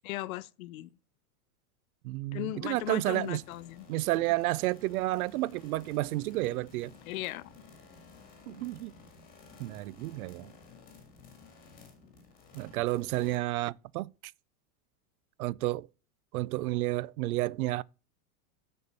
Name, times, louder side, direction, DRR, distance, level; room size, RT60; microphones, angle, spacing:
voice 1, 0.0-0.9 2.3-3.9 7.1-7.5, left 17 dB, 70° left, 0.6 m, -37 dB
voice 2, 2.0-3.4 3.9-6.9 8.5-8.9 9.6-10.5 12.5-14.3 15.4-15.9 16.3-17.8, right 18 dB, 75° right, 0.5 m, -31 dB
sound 1, 2.8-13.4, left 4 dB, 20° left, 1.7 m, -54 dB
8.3 x 4.3 x 6.7 m
supercardioid pair, 170°, 43 cm